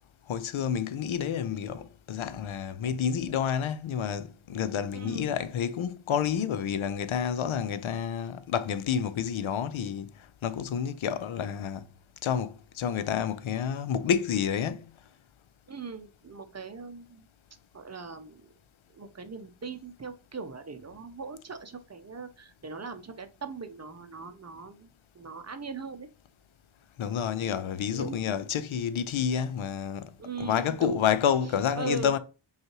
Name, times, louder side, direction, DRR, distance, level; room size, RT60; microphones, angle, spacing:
voice 1, 0.3-10.1 10.4-11.8 12.2-14.9 27.0-30.1 30.4-32.2, left 8 dB, 80° left, 0.5 m, -29 dB
voice 2, 4.9-5.3 15.7-17.3 17.7-18.5 18.9-26.1 27.9-28.3 30.2-31.0 31.4-32.1, right 4 dB, 35° right, 0.6 m, -40 dB
5.3 x 2.4 x 2.9 m
wide cardioid pair, 80°, 48 cm